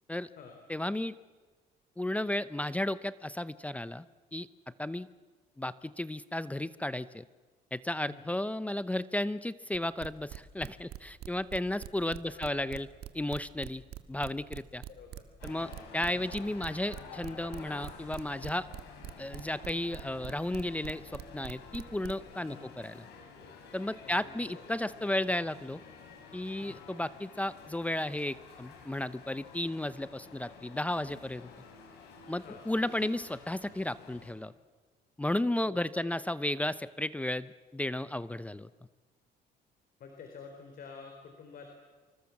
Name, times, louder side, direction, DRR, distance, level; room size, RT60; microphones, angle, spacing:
voice 1, 0.7-1.2 2.0-4.0 4.3-4.5 4.8-5.1 5.6-7.2 7.7-12.9 13.1-13.8 14.1-14.8 15.4-18.7 19.2-23.1 23.7-25.8 26.3-31.5 32.3-34.5 35.2-38.7, left 1 dB, 10° left, 15 dB, 0.7 m, -34 dB
sound 1, 9.7-22.4, right 12 dB, 75° right, 1.8 m, -43 dB
voice 2, 12.2-12.7 14.9-15.3 15.6-15.8 22.5-22.7 24.0-24.6 26.6-26.9 32.4-32.6 35.6-36.1 40.0-41.7, left 5 dB, 60° left, 4 dB, 4.3 m, -50 dB
sound 2, 15.4-34.3, left 5 dB, 85° left, 5.9 m, -51 dB
26.5 x 24.5 x 7.3 m, 1.3 s
cardioid pair, 110°, 17 cm